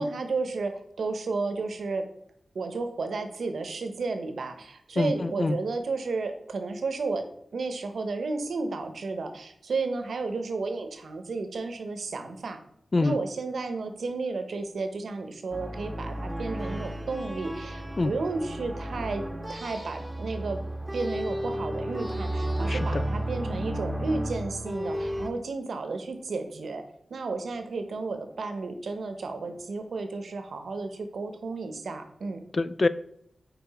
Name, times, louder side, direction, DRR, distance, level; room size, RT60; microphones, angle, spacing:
voice 1, 0.0-2.1 2.5-7.3 7.5-12.6 13.0-19.2 19.5-20.6 20.9-26.8 27.1-32.4, right 3 dB, 85° right, 7 dB, 0.8 m, -32 dB
voice 2, 5.0-5.6 12.9-13.2 18.0-18.1 22.7-23.0 32.5-32.9, left 3 dB, 50° left, 15 dB, 0.3 m, -25 dB
sound 1, 15.5-25.3, right 1 dB, 10° right, 1.0 m, -33 dB
5.7 x 4.2 x 4.1 m, 0.71 s
cardioid pair, 55°, 0 cm